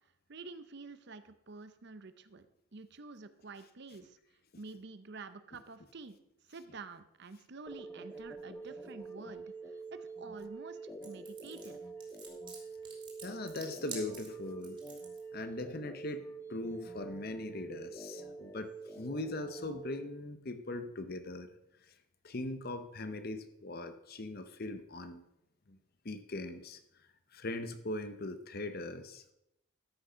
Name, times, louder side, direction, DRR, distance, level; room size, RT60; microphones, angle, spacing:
voice 1, 0.3-2.5 2.7-4.2 4.6-6.2 6.5-10.8 11.0-11.8, right 3 dB, 50° right, 11 dB, 0.7 m, -49 dB
sound 1, 7.7-20.1, right 3 dB, 10° left, 0.7 m, -46 dB
sound 2, 11.0-15.2, right 4 dB, 25° right, 2.7 m, -48 dB
voice 2, 13.2-14.8 15.3-21.5 21.9-22.0 22.2-25.2 25.7-25.8 26.0-26.8 27.3-29.3, left 2 dB, 45° left, 10 dB, 0.9 m, -40 dB
13.5 x 6.5 x 5.6 m, 0.83 s
head